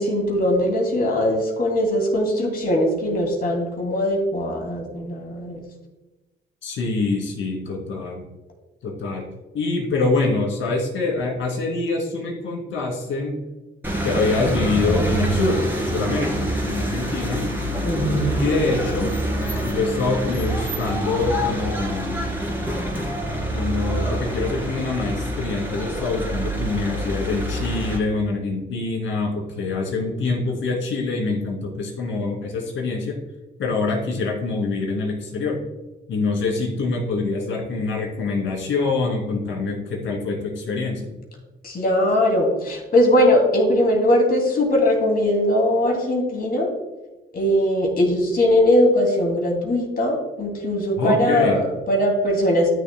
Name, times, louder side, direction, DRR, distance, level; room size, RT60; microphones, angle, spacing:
voice 1, 0.0-5.6 17.8-18.3 41.6-46.7 47.3-52.7, left 1 dB, 50° left, 1 dB, 2.7 m, -20 dB
voice 2, 6.6-8.2 8.8-9.3 9.5-13.4 14.0-17.5 18.4-19.2 19.6-22.3 23.5-33.2 33.6-35.6 36.1-41.2 51.0-51.7, left 3 dB, 75° left, -1 dB, 2.8 m, -25 dB
sound 1, 13.8-28.0, right 1 dB, 10° right, 2.5 m, -26 dB
12.5 x 6.9 x 2.3 m, 1.1 s
cardioid pair, 90°, 20 cm